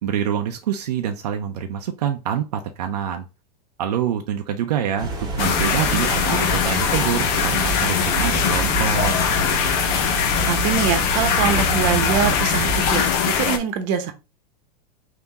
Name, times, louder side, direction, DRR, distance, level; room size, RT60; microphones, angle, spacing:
voice 1, 0.0-3.2 3.8-9.1, right 9 dB, 85° right, 0.6 m, -26 dB
sound 1, 5.0-13.0, right 3 dB, 20° right, 1.4 m, -28 dB
sound 2, 5.4-13.6, left 7 dB, 50° left, 0.8 m, -21 dB
voice 2, 6.1-6.4 10.5-14.1, right 8 dB, 55° right, 0.9 m, -24 dB
3.6 x 2.8 x 4.0 m
supercardioid pair, 120°, 20 cm